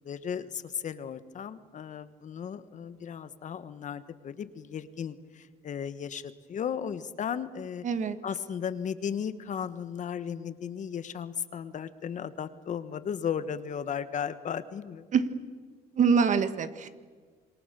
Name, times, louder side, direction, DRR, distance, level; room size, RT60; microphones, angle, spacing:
voice 1, 0.0-7.8 8.2-15.0, left 8 dB, 45° left, 13 dB, 1.3 m, -35 dB
voice 2, 7.8-8.2 15.1-15.3 15.9-16.9, right 6 dB, 45° right, 11 dB, 1.6 m, -24 dB
27.5 x 23.0 x 6.9 m, 1.5 s
cardioid pair, 110°, 17 cm